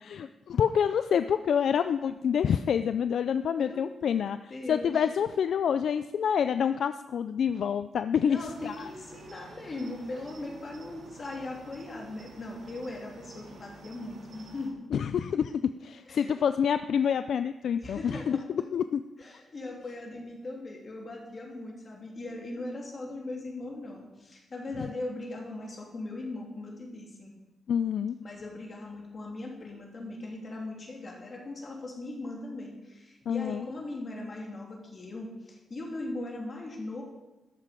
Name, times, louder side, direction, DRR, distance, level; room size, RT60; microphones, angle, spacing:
voice 1, 0.0-4.4 4.7-8.9 14.9-15.5 15.8-18.4 18.7-19.0 24.8-24.9 27.7-28.2 33.3-33.7, left 8 dB, 60° left, 11 dB, 0.4 m, -27 dB
voice 2, 3.5-3.9 4.5-5.0 8.3-14.8 16.1-16.3 17.8-18.6 19.2-27.3 28.2-37.0, left 2 dB, 30° left, -1 dB, 3.1 m, -39 dB
Cricket, 8.4-14.7, right 3 dB, 60° right, 2.4 m, -50 dB
13.5 x 11.5 x 5.2 m, 1.1 s
wide cardioid pair, 165°, 0 cm